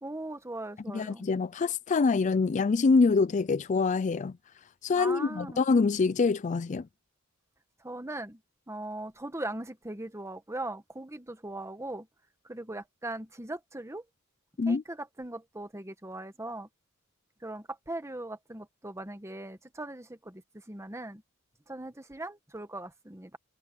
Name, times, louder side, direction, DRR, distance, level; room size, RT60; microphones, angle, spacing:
voice 1, 0.0-1.2 4.9-5.6 7.8-8.4 8.7-12.1 12.5-14.0 14.7-16.7 17.4-20.4 20.7-21.2 21.7-23.4, right 2 dB, 15° right, 1.5 m, -39 dB
voice 2, 0.9-4.4 4.8-6.9 14.6-14.8, left 4 dB, 35° left, 0.4 m, -25 dB
head